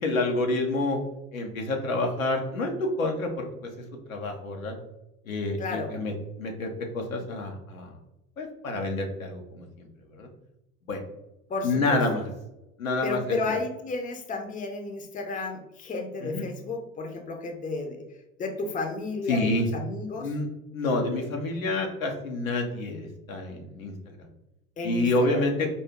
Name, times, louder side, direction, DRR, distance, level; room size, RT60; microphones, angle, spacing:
voice 1, 0.0-1.0 1.3-3.7 4.1-4.7 5.3-6.1 6.4-7.9 8.4-10.3 10.9-11.0 11.6-12.3 12.8-13.4 16.2-16.4 19.3-19.7 20.2-20.5 20.7-24.3 24.8-25.7, left 2 dB, 80° left, 2 dB, 0.9 m, -28 dB
voice 2, 5.6-5.9 11.5-12.0 13.0-18.0 18.4-20.3 24.8-25.4, left 3 dB, 20° left, 4 dB, 0.7 m, -32 dB
4.3 x 2.7 x 3.6 m, 0.91 s
figure-of-eight pair, 70°, 41 cm